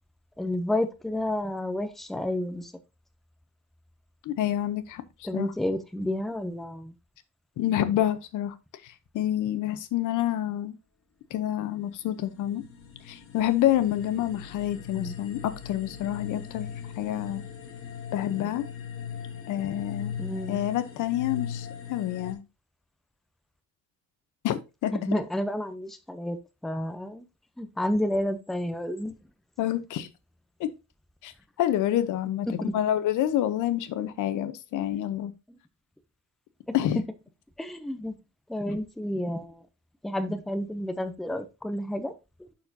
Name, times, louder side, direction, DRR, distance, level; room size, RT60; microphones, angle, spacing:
voice 1, 0.4-2.7 5.2-6.9 14.9-15.2 20.2-20.6 24.9-26.4 26.6-27.3 27.6-29.1 32.5-32.7 35.5-35.6 36.7-37.0 37.6-38.1 38.5-39.6 40.0-42.1, left 1 dB, ahead, 0.6 m, -30 dB
voice 2, 4.2-5.0 5.3-5.5 7.6-8.5 8.8-10.8 11.3-12.6 13.1-16.7 17.0-17.4 18.1-18.6 19.5-20.2 20.5-22.4 24.4-24.9 29.6-30.1 30.6-30.7 31.2-31.3 31.6-32.5 32.7-35.3 36.7-37.0, left 12 dB, 85° left, 0.8 m, -28 dB
sound 1, 11.7-22.3, left 8 dB, 45° left, 1.4 m, -39 dB
10.5 x 4.4 x 2.7 m
cardioid pair, 140°, 30 cm